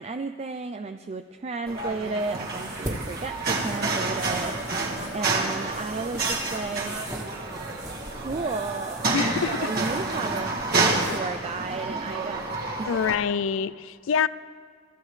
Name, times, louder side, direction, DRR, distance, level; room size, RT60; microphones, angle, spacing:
voice 1, 0.0-6.9 8.1-9.1 9.5-10.5 11.1-12.9, right 4 dB, 35° right, 0.4 m, -33 dB
sound 1, 1.7-13.2, right 3 dB, 55° right, 1.8 m, -29 dB
sound 2, 2.2-11.2, right 1 dB, 15° right, 1.6 m, -40 dB
voice 2, 9.1-9.7 12.9-14.3, left 7 dB, 85° left, 0.4 m, -26 dB
24.5 x 13.5 x 3.3 m
head